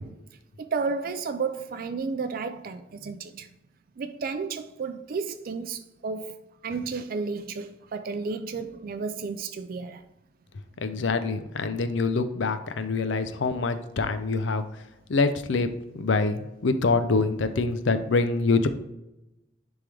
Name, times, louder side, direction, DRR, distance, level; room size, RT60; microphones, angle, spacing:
voice 1, 0.6-3.5 4.0-10.1, right 4 dB, 50° right, 0.4 m, -32 dB
voice 2, 10.8-14.6 15.1-18.7, left 3 dB, 70° left, 0.6 m, -25 dB
10.0 x 3.6 x 3.4 m
head